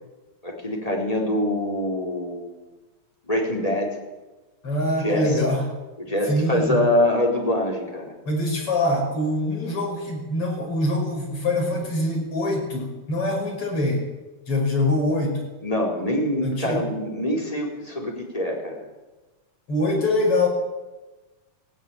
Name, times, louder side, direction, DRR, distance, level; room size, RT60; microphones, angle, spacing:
voice 1, 0.4-2.5 3.3-4.0 5.0-5.4 6.0-8.1 15.6-18.8, left 1 dB, 10° left, 0 dB, 4.2 m, -24 dB
voice 2, 4.6-5.6 6.2-6.8 8.3-14.1 14.5-15.4 16.4-16.8 19.7-20.5, left 1 dB, 45° left, 0 dB, 6.6 m, -24 dB
17.5 x 16.5 x 8.9 m, 1.1 s
omnidirectional pair, 3.6 m